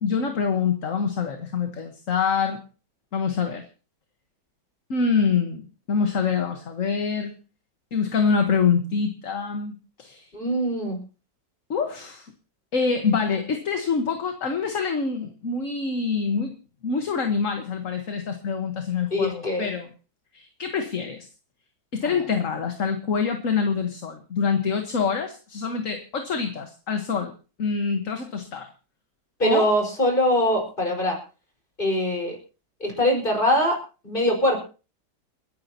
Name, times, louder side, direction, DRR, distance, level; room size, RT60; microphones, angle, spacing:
voice 1, 0.0-2.6 3.1-3.6 4.9-7.3 7.9-10.3 11.7-12.3 12.7-16.5 16.8-19.9 20.3-21.3 21.9-27.3 27.6-28.7 29.4-29.7, left 5 dB, 45° left, 5 dB, 1.6 m, -25 dB
voice 2, 10.3-11.0 19.1-19.7 22.0-22.1 29.4-31.2 31.8-32.4 32.8-33.8 34.0-34.6, equal, 25° left, 0 dB, 5.2 m, -22 dB
30.0 x 10.5 x 2.9 m, 0.35 s
omnidirectional pair, 2.1 m